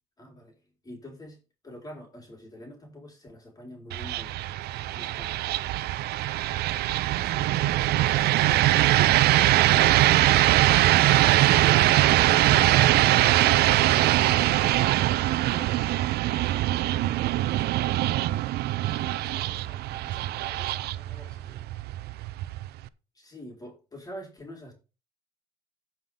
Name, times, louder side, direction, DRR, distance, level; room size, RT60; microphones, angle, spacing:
voice 1, 0.2-0.5 0.8-5.9 23.1-24.7, equal, 20° left, 0 dB, 4.4 m, -45 dB
sound 1, 3.9-22.9, right 15 dB, 70° right, 0.5 m, -22 dB
voice 2, 7.3-11.2 12.0-18.2 18.9-21.7, left 1 dB, 5° left, -5 dB, 3.7 m, -51 dB
15.0 x 5.7 x 3.7 m, 0.32 s
cardioid pair, 110°, 17 cm